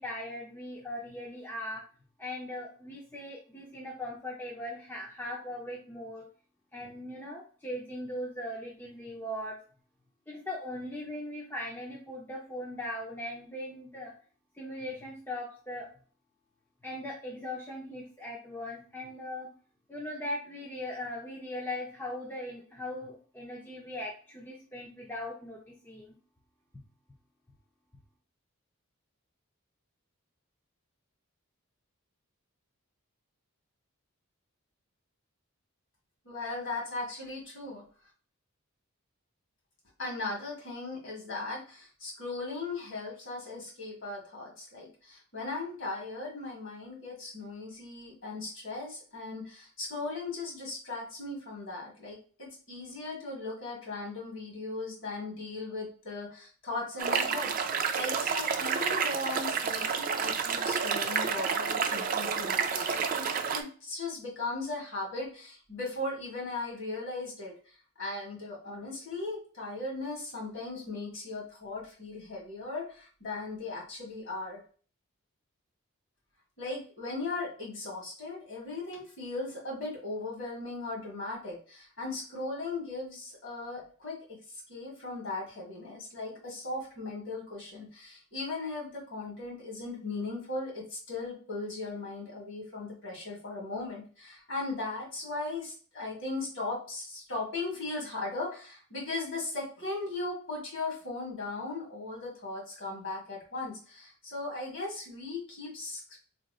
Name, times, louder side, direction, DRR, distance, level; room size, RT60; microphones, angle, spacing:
voice 1, 0.0-1.8 2.2-6.2 6.7-9.6 10.3-14.1 14.5-15.9 16.8-19.5 19.9-25.6 25.8-26.1, left 1 dB, 10° left, -3 dB, 0.5 m, -39 dB
voice 2, 36.2-37.8 40.0-63.3 63.5-67.5 68.0-74.6 76.6-84.4 84.7-106.2, left 3 dB, 55° left, -3 dB, 1.8 m, -38 dB
sound 1, 57.0-63.6, right 6 dB, 40° right, 0.3 m, -30 dB
4.0 x 3.0 x 2.3 m, 0.40 s
head